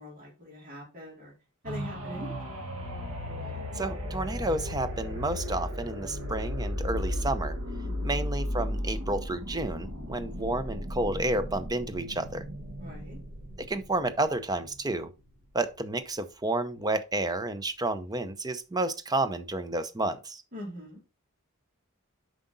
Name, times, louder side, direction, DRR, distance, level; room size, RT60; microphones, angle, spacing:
voice 1, 0.0-1.3 1.6-2.7 7.8-8.3 10.3-10.5 12.8-13.2 20.5-21.0, left 1 dB, 40° right, 3.5 m, -43 dB
sound 1, 1.6-15.3 15.8-15.9, left 1 dB, 75° right, 1.7 m, -35 dB
voice 2, 3.7-7.6 8.0-12.4 13.6-15.1 15.5-20.4, right 2 dB, 15° right, 0.6 m, -31 dB
7.6 x 5.0 x 4.0 m
head